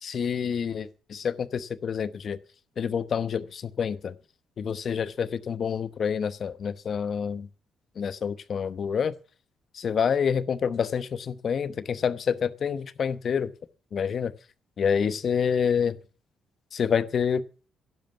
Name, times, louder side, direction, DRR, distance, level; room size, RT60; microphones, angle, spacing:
voice 1, 0.0-2.4 2.8-4.1 4.6-7.5 8.0-9.1 9.7-13.5 13.9-14.3 14.8-16.0 16.7-17.4, left 7 dB, 50° left, 0.9 m, -27 dB
11.0 x 11.0 x 7.2 m
cardioid pair, 90°, 0 cm